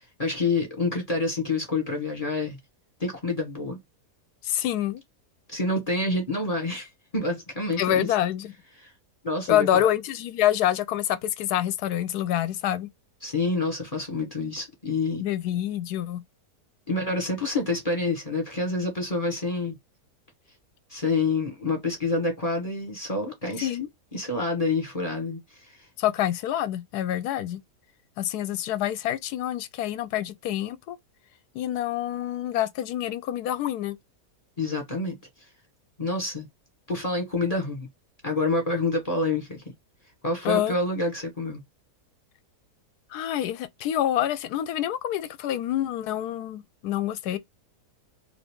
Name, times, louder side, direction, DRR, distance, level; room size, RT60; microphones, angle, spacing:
voice 1, 0.2-2.6 3.0-3.8 5.5-8.1 9.2-9.8 13.2-15.2 16.9-19.7 20.9-23.7 24.1-25.4 34.6-35.2 36.0-36.5 36.9-37.9 38.2-39.6 40.2-41.6, left 2 dB, 25° left, 1.2 m, -27 dB
voice 2, 4.4-5.0 7.8-8.5 9.5-12.9 15.2-16.2 23.6-23.9 26.0-27.6 28.2-31.0 31.5-34.0 40.4-40.7 43.1-47.4, left 12 dB, 75° left, 1.1 m, -27 dB
2.8 x 2.7 x 3.4 m
omnidirectional pair, 1.8 m